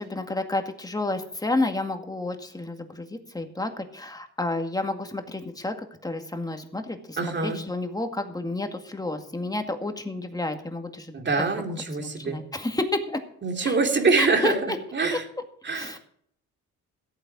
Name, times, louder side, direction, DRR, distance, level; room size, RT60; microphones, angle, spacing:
voice 1, 0.0-11.1 11.7-13.2 13.6-13.8 14.2-14.8 15.1-15.2 15.7-16.0, left 2 dB, 10° left, 6 dB, 2.0 m, -30 dB
voice 2, 7.2-7.6 11.1-12.4 13.4-14.5 14.9-15.2 15.6-16.0, right 4 dB, 35° right, 3 dB, 2.7 m, -24 dB
14.5 x 8.9 x 6.0 m, 0.65 s
cardioid pair, 90°, 30 cm